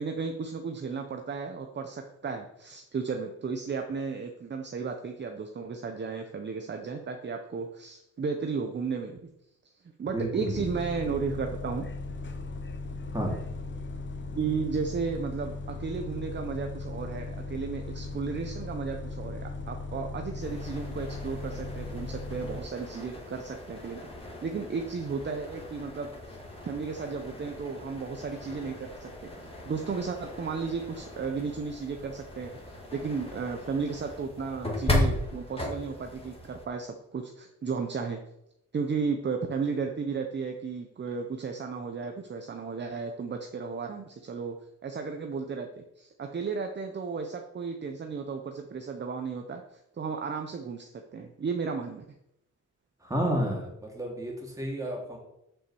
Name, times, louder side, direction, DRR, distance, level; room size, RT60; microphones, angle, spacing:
voice 1, 0.0-9.2 10.0-11.9 14.3-24.1 24.4-26.4 26.6-29.3 29.6-38.2 38.7-44.6 44.8-52.0, right 5 dB, 35° right, 5 dB, 0.7 m, -34 dB
voice 2, 10.1-10.5 13.1-13.4 53.0-55.2, right 1 dB, 10° right, -1 dB, 2.4 m, -31 dB
Bus, 10.5-22.6, left 3 dB, 40° left, 0.9 m, -38 dB
sound 1, 20.4-36.6, left 1 dB, 20° left, 2.2 m, -37 dB
7.2 x 5.6 x 6.9 m, 0.83 s
wide cardioid pair, 135°, 30 cm